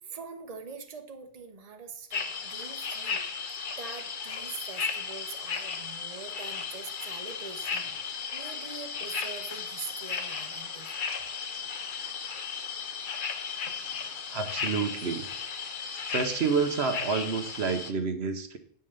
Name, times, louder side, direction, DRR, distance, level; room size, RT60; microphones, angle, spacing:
voice 1, 0.0-3.2 3.8-10.9, right 5 dB, 40° right, 6 dB, 1.0 m, -43 dB
sound 1, 2.1-17.9, left 6 dB, 55° left, 1.0 m, -35 dB
voice 2, 13.6-15.3 15.8-18.6, right 5 dB, 75° right, 7 dB, 1.2 m, -30 dB
9.0 x 5.6 x 6.5 m, 0.63 s
omnidirectional pair, 1.1 m